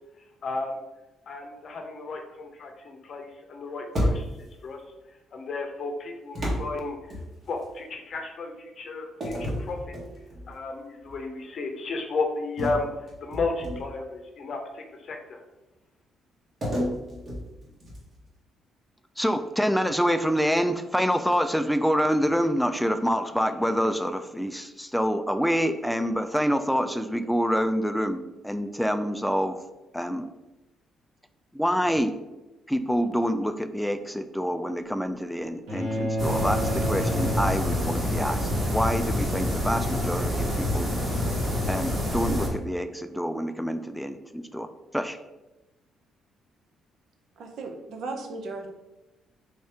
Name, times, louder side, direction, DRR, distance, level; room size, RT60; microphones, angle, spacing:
voice 1, 0.4-0.8 1.3-4.3 4.6-4.8 5.3-7.1 7.5-9.9 10.5-12.9 13.2-15.4, left 3 dB, 55° left, 4 dB, 0.6 m, -33 dB
sound 1, 3.9-4.6 6.3-7.7 9.2-10.5 11.0-11.2 12.6-14.1 16.6-18.2, equal, 50° right, 1.3 m, -31 dB
voice 2, 19.2-29.6 29.9-30.3 31.5-32.1 32.7-40.9 41.7-44.7 44.9-45.2, equal, ahead, 9 dB, 0.3 m, -26 dB
sound 2, 35.7-38.2, equal, 85° right, 1.3 m, -30 dB
sound 3, 36.2-42.5, left 1 dB, 30° right, 1.3 m, -27 dB
voice 3, 47.4-48.7, right 3 dB, 70° right, 4 dB, 0.6 m, -36 dB
3.6 x 2.7 x 3.4 m, 1.0 s
supercardioid pair, 75°, 0 cm